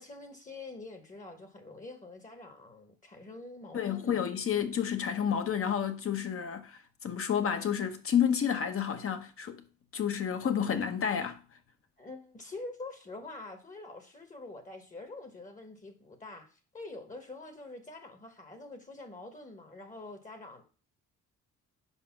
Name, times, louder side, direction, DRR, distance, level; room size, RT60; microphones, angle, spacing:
voice 1, 0.0-4.2 12.0-20.6, left 2 dB, 25° left, 1.2 m, -46 dB
voice 2, 3.7-9.6 9.9-11.4, left 8 dB, 45° left, 1.0 m, -30 dB
4.9 x 4.2 x 5.8 m
cardioid pair, 90°, 30 cm